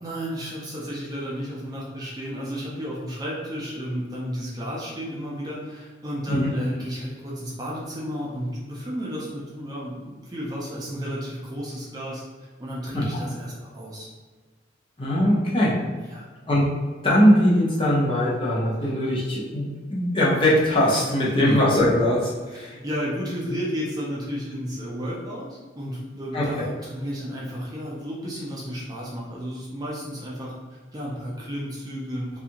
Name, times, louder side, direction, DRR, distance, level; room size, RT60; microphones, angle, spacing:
voice 1, 0.0-14.1 16.0-16.3 18.8-18.9 21.4-21.5 22.5-32.4, equal, 20° right, -5 dB, 0.4 m, -33 dB
voice 2, 15.0-15.7 16.5-16.7 17.0-19.6 19.9-22.7 26.3-26.7, equal, 25° left, -6 dB, 0.6 m, -20 dB
2.6 x 2.3 x 2.8 m, 1.4 s
head